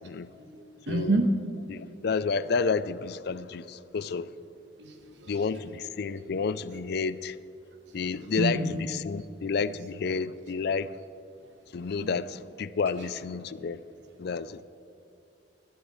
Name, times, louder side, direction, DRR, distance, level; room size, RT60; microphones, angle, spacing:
voice 1, 0.3-1.3 4.8-4.9 5.2-5.7 8.0-8.7 9.1-9.2 12.0-12.1, right 2 dB, 70° right, 1.3 m, -29 dB
voice 2, 0.9-1.2 1.7-4.3 5.3-7.4 7.9-10.9 11.7-13.8 14.2-14.6, left 5 dB, 60° left, 0.4 m, -30 dB
19.0 x 12.0 x 3.2 m
head